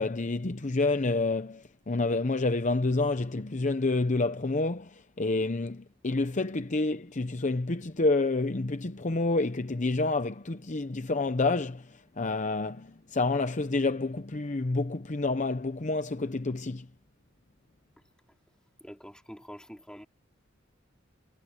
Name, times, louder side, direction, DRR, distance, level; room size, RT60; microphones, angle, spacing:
voice 1, 0.0-16.9, left 3 dB, 40° left, 0.8 m, -28 dB
voice 2, 18.8-20.1, equal, 5° left, 3.9 m, -46 dB
head